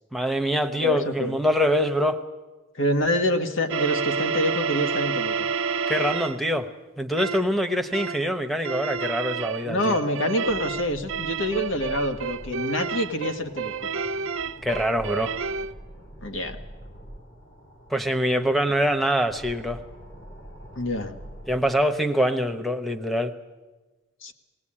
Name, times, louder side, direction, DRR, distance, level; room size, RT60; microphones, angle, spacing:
voice 1, 0.1-2.2 5.9-6.7 7.0-10.0 14.6-15.3 17.9-19.8 21.5-23.3, equal, ahead, 4 dB, 0.9 m, -24 dB
voice 2, 0.7-1.4 2.8-5.3 9.6-13.9 16.2-16.6 20.7-21.2 24.2-24.3, left 1 dB, 80° left, 7 dB, 1.5 m, -26 dB
sound 1, 3.7-6.4 7.2-7.5 7.9-8.3 8.6-15.7, right 5 dB, 90° right, 0.6 m, -29 dB
sound 2, 10.4-21.7, equal, 60° left, 3.2 m, -45 dB
19.5 x 18.0 x 8.7 m, 1.2 s
head